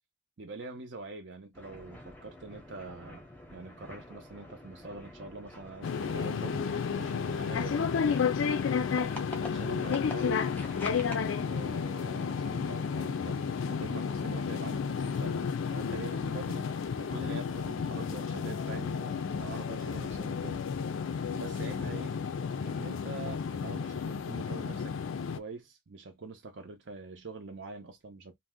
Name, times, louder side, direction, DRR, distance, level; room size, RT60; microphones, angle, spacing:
voice 1, 0.4-8.2 9.4-10.6 11.4-20.7 21.3-22.2 22.6-24.9 25.3-28.4, right 3 dB, 60° right, 0.6 m, -44 dB
sound 1, 1.5-11.2, left 1 dB, 10° left, 0.6 m, -47 dB
sound 2, 5.8-25.4, left 6 dB, 70° left, 0.4 m, -32 dB
2.6 x 2.1 x 3.5 m
head